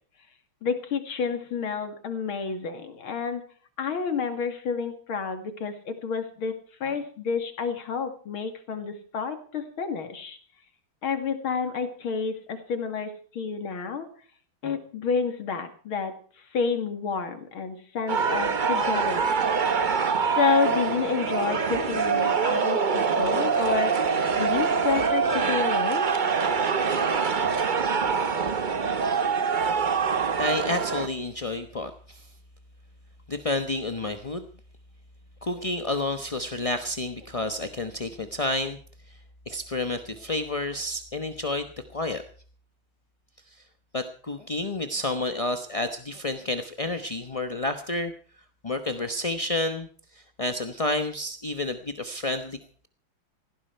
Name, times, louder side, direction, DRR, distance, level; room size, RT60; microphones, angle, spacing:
voice 1, 0.6-3.4 3.8-10.4 11.0-14.1 14.6-16.1 16.5-19.5 20.4-23.9 24.3-26.1, left 5 dB, 85° left, 8 dB, 3.1 m, -29 dB
sound 1, 18.1-31.1, right 5 dB, 45° right, 0.6 m, -24 dB
voice 2, 30.1-32.3 33.3-34.5 35.4-38.8 39.1-39.2 39.5-42.2 43.5-43.6 43.9-48.1 48.6-52.6, left 2 dB, 30° left, 8 dB, 0.7 m, -30 dB
18.5 x 15.5 x 4.6 m, 0.43 s
omnidirectional pair, 2.2 m